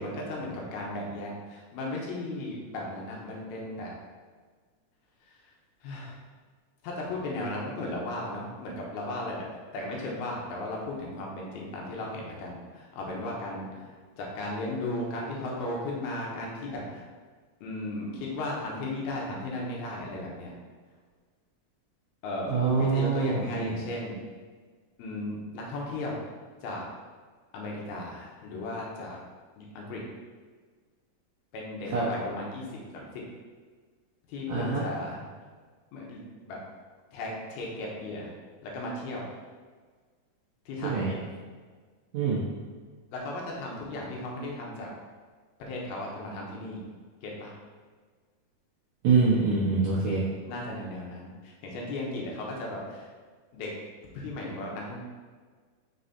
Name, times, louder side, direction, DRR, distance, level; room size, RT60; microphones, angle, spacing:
voice 1, 0.0-3.9 5.3-5.4 5.8-6.2 6.8-9.5 9.7-17.0 17.6-20.5 22.2-24.2 25.0-26.2 26.6-26.9 27.5-29.2 29.6-30.0 31.5-32.7 32.9-33.2 34.3-35.2 35.9-36.6 37.1-38.3 38.6-39.3 40.7-41.1 43.1-44.9 45.6-46.8 47.2-47.5 50.4-53.1 53.5-53.7 54.1-55.0, left 2 dB, 80° left, -2 dB, 2.8 m, -36 dB
voice 2, 22.5-23.7 31.9-32.0 34.5-34.8 40.8-41.1 42.1-42.4 49.0-50.2, right 4 dB, 75° right, -7 dB, 1.6 m, -25 dB
6.0 x 3.9 x 4.1 m, 1.5 s
omnidirectional pair, 4.4 m